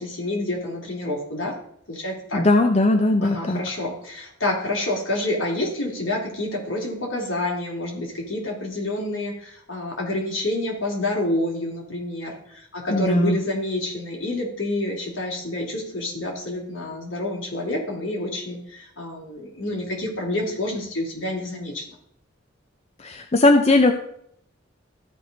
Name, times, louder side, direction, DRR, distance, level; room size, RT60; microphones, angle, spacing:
voice 1, 0.0-1.6 1.9-2.4 3.2-21.8, left 1 dB, 70° left, -2 dB, 2.9 m, -28 dB
voice 2, 2.3-3.6 12.9-13.4 23.0-23.9, left 2 dB, 35° left, 4 dB, 0.6 m, -18 dB
14.0 x 5.1 x 3.9 m, 0.70 s
head